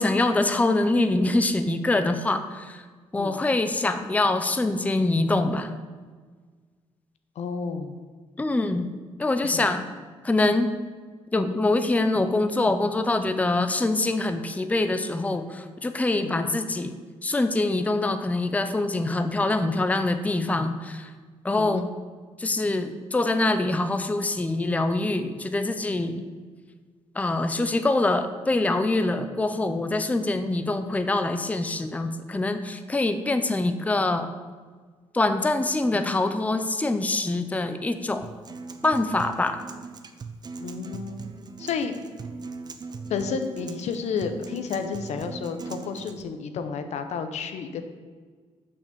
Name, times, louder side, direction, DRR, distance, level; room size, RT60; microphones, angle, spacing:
voice 1, 0.0-2.8 3.1-5.7 8.4-8.9 9.2-9.8 10.2-10.7 11.3-17.0 17.2-21.1 21.4-21.9 22.4-26.3 27.2-34.3 35.1-38.3 38.8-39.6, left 2 dB, 10° left, 8 dB, 0.6 m, -24 dB
voice 2, 7.4-8.0 9.4-9.7 16.2-16.5 21.6-21.9 35.9-36.2 40.6-41.2 41.6-41.9 43.1-48.0, left 6 dB, 75° left, 8 dB, 0.8 m, -31 dB
Acoustic guitar, 38.2-46.2, right 4 dB, 35° right, 0.7 m, -39 dB
6.5 x 5.9 x 6.8 m, 1.5 s
cardioid pair, 115°, 12 cm